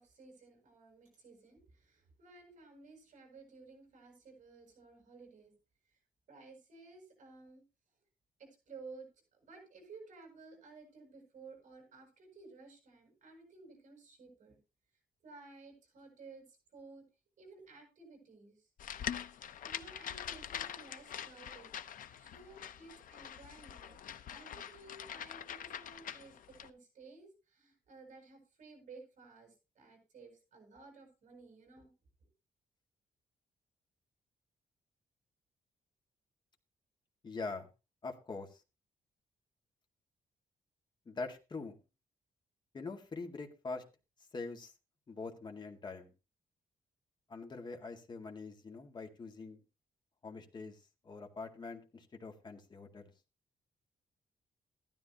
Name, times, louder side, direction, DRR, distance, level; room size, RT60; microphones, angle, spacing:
voice 1, 0.0-5.5 6.3-7.6 8.4-9.1 9.3-14.6 15.2-17.1 17.4-18.7 19.6-21.7 22.2-24.0 24.3-31.9, right 3 dB, 55° right, 2 dB, 8.0 m, -55 dB
sound 1, 18.8-26.7, left 9 dB, 65° left, 0.8 m, -44 dB
voice 2, 37.2-37.7 38.0-38.6 41.1-41.8 42.7-43.8 44.3-44.7 45.1-46.1 47.3-49.6 50.2-50.8 51.0-53.1, left 3 dB, 30° left, 3 dB, 2.1 m, -44 dB
15.5 x 13.0 x 3.0 m, 0.29 s
wide cardioid pair, 145°, 15 cm